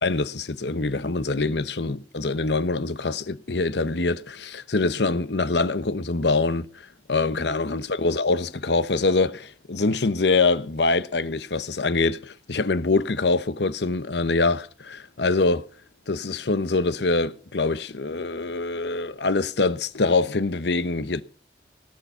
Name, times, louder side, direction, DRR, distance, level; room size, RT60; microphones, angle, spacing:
voice 1, 0.0-6.7 7.1-15.7 16.1-21.2, left 3 dB, 70° left, 0.9 m, -24 dB
18.0 x 9.6 x 5.6 m
head